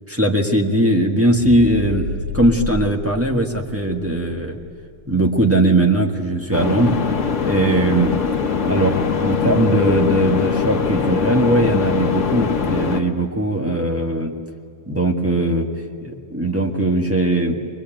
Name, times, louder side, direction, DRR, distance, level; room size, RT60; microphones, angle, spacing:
voice 1, 0.1-2.1 2.3-4.6 5.1-6.9 7.4-8.1 8.6-14.3 14.9-15.7 16.0-17.6, right 1 dB, 10° right, 0 dB, 1.5 m, -19 dB
sound 1, 1.3-5.8, left 1 dB, 85° right, 2.3 m, -32 dB
sound 2, 6.5-13.0, left 6 dB, 75° left, 1.6 m, -21 dB
23.0 x 21.5 x 9.0 m, 2.4 s
omnidirectional pair, 1.3 m